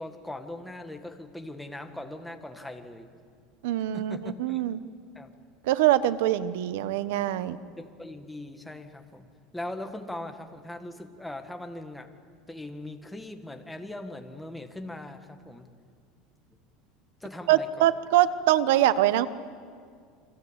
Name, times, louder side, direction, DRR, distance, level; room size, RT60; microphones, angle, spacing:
voice 1, 0.0-3.1 3.9-4.6 5.2-5.3 7.8-9.3 9.5-12.1 12.5-15.7 17.2-17.9, left 1 dB, 5° left, 5 dB, 1.8 m, -40 dB
voice 2, 3.6-4.8 5.6-7.6 17.5-19.3, right 13 dB, 85° right, 14 dB, 1.2 m, -23 dB
28.0 x 25.0 x 8.3 m, 2.2 s
cardioid pair, 155°, 0 cm